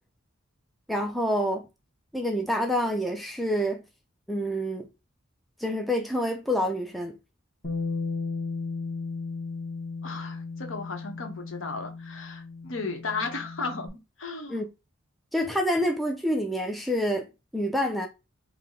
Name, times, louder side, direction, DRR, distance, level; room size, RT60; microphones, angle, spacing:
voice 1, 0.9-1.7 2.1-3.8 4.3-4.9 5.6-7.2 14.5-14.7 15.3-18.1, equal, ahead, 0.3 m, -27 dB
Bass guitar, 7.6-13.9, left 4 dB, 35° left, 1.1 m, -35 dB
voice 2, 10.0-14.6, left 4 dB, 70° left, 1.0 m, -35 dB
4.7 x 2.1 x 3.6 m
head